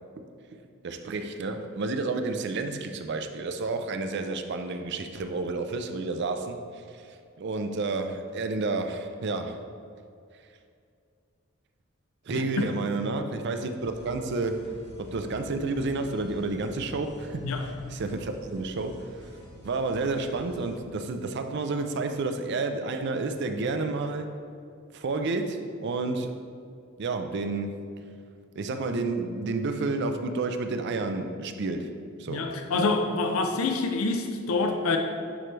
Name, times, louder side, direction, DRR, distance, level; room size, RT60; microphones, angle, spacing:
voice 1, 0.8-6.8 7.4-9.6 12.3-17.5 17.9-19.3 19.6-24.4 24.9-26.4 27.0-27.8 28.6-32.9, right 3 dB, 55° right, 7 dB, 0.4 m, -30 dB
voice 2, 12.3-12.7 17.4-17.7 32.3-35.0, left 3 dB, 80° left, 4 dB, 0.5 m, -27 dB
sound 1, 13.8-20.8, left 1 dB, 55° left, 1.1 m, -48 dB
9.7 x 3.3 x 3.2 m, 2.4 s
head